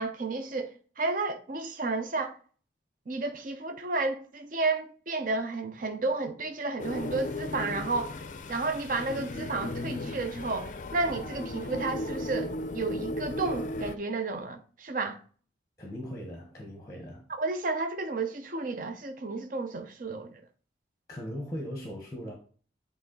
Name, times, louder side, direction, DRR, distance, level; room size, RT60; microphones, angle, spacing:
voice 1, 0.0-2.4 3.1-8.2 8.5-15.2 17.4-20.4, right 3 dB, 45° right, 0.7 m, -32 dB
sound 1, 6.8-14.0, left 1 dB, 40° left, 0.4 m, -36 dB
voice 2, 15.8-17.2 21.1-22.4, equal, 20° left, 1.1 m, -39 dB
8.4 x 3.2 x 3.9 m
head